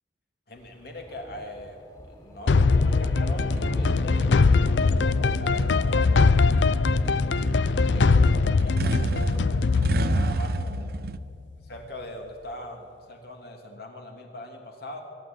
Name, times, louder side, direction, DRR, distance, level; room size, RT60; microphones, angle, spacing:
voice 1, 0.5-1.8 2.1-4.2 4.6-7.2 7.8-10.9 11.7-15.0, left 1 dB, 60° left, 2 dB, 3.1 m, -41 dB
Thunder, 0.6-10.6, equal, 25° left, 3.9 m, -40 dB
sound 1, 2.5-11.3, left 4 dB, 90° left, 0.5 m, -22 dB
sound 2, 3.4-11.2, right 3 dB, 55° right, 0.6 m, -32 dB
23.5 x 11.5 x 9.6 m, 2.4 s
head